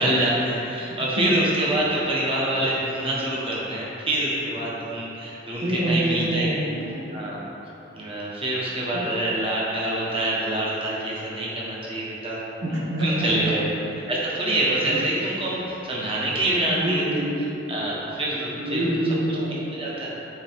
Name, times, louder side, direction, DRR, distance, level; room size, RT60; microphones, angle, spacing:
voice 1, 0.0-6.7 7.1-7.4 7.9-12.4 12.7-13.6 14.1-17.0 17.7-18.9 19.7-20.1, right 1 dB, 30° right, -6 dB, 1.3 m, -26 dB
voice 2, 0.9-1.4 5.6-7.1 8.9-9.1 12.6-13.5 14.8-15.0 16.7-17.3 18.6-19.6, right 1 dB, 85° right, -5 dB, 1.3 m, -26 dB
8.7 x 4.7 x 3.6 m, 3.0 s
head